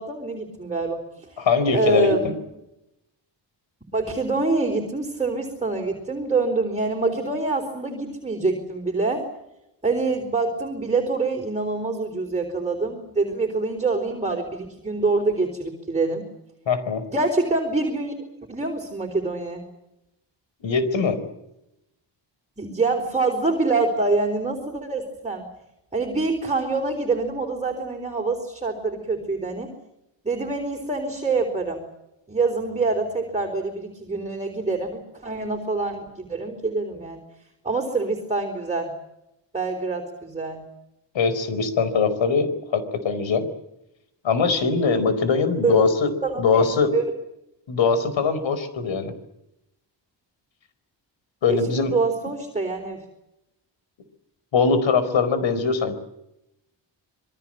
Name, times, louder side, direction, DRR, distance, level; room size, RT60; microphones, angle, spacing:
voice 1, 0.0-2.3 3.9-9.3 9.8-16.3 17.1-18.1 18.5-19.7 22.6-25.5 25.9-29.7 30.2-31.8 32.3-37.2 37.6-38.9 39.5-40.6 45.6-45.8 46.2-46.7 46.9-47.0 51.5-53.1, right 3 dB, 15° right, 1 dB, 4.2 m, -25 dB
voice 2, 1.4-2.1 16.7-17.0 20.6-21.2 41.1-43.5 44.2-46.1 46.4-46.9 47.7-49.1 51.4-51.9 54.5-55.9, left 5 dB, 85° left, 12 dB, 4.5 m, -21 dB
27.5 x 22.0 x 7.6 m, 0.87 s
wide cardioid pair, 145°, 45 cm